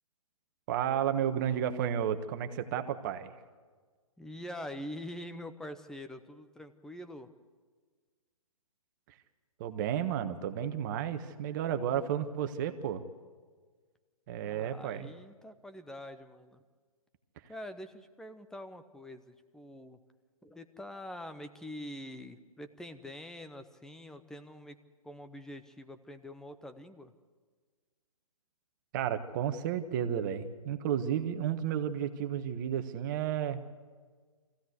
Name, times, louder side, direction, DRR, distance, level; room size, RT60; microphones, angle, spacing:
voice 1, 0.7-3.3 9.6-13.0 14.3-15.1 28.9-33.6, right 9 dB, 35° right, 9 dB, 1.4 m, -32 dB
voice 2, 4.2-7.3 14.4-16.6 17.5-20.0 20.4-24.8 25.0-27.1, left 1 dB, 5° left, 9 dB, 0.8 m, -45 dB
24.5 x 16.0 x 8.2 m, 1.5 s
figure-of-eight pair, 130°, 18 cm